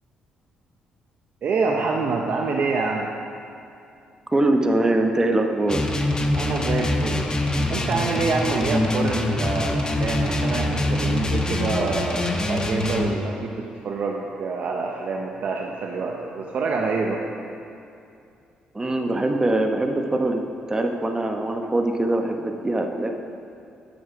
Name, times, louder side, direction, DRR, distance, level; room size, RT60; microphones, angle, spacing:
voice 1, 1.4-3.1 6.3-7.3 7.7-17.2, right 4 dB, 60° right, 0 dB, 0.8 m, -26 dB
voice 2, 4.3-5.9 18.7-23.1, right 2 dB, 20° right, 4 dB, 1.0 m, -23 dB
sound 1, 5.7-13.1, left 1 dB, 25° left, 1.0 m, -24 dB
9.5 x 6.2 x 5.1 m, 2.6 s
supercardioid pair, 65°, 3 cm